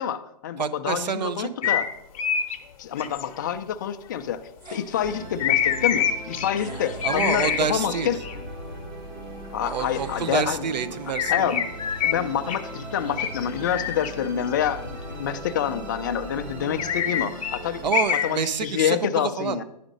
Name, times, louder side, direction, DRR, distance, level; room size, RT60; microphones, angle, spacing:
voice 1, 0.0-1.9 2.8-8.2 9.5-10.6 11.3-11.6 12.0-17.8 18.2-19.6, left 9 dB, 30° left, 8 dB, 0.4 m, -27 dB
voice 2, 0.6-1.7 7.0-8.1 9.6-11.6 17.8-19.6, right 6 dB, 90° right, 14 dB, 0.7 m, -28 dB
sound 1, 1.6-1.9 2.1-2.6 3.0-3.2 5.4-8.4 11.1-12.2 12.5-12.6 13.1-14.1 14.6-14.7 16.8-18.3 18.6-18.8, left 8 dB, 55° left, 0.8 m, -25 dB
sound 2, 4.6-5.3 6.5-8.2 9.7-11.1, right 3 dB, 70° right, 1.7 m, -45 dB
Musical instrument, 5.0-17.8, right 1 dB, 30° right, 1.2 m, -38 dB
9.9 x 5.0 x 5.2 m, 0.80 s
hypercardioid pair, 165°, 21 cm